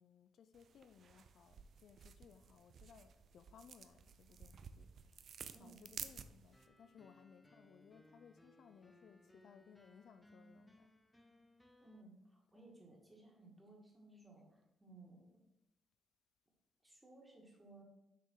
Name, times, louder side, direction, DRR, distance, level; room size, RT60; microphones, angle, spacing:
voice 1, 0.0-5.2 5.6-10.9, left 7 dB, 65° left, 10 dB, 0.4 m, -63 dB
sound 1, 0.5-6.7, right 7 dB, 55° right, 0.4 m, -54 dB
sound 2, 6.5-12.0, left 1 dB, 5° left, 0.5 m, -66 dB
voice 2, 11.8-15.3 16.8-17.8, right 2 dB, 10° right, -1 dB, 1.9 m, -60 dB
6.7 x 3.8 x 4.7 m, 0.89 s
cardioid pair, 90°, 0 cm